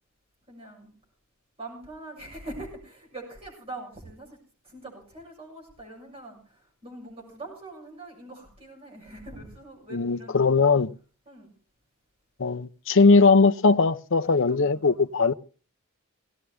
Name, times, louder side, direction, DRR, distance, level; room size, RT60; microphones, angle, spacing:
voice 1, 0.5-0.9 1.6-4.4 4.6-10.8 11.3-11.5 14.2-15.0, right 2 dB, 25° right, 6.9 m, -43 dB
voice 2, 9.9-10.9 12.4-15.3, left 4 dB, 60° left, 0.7 m, -20 dB
18.0 x 17.0 x 3.5 m
head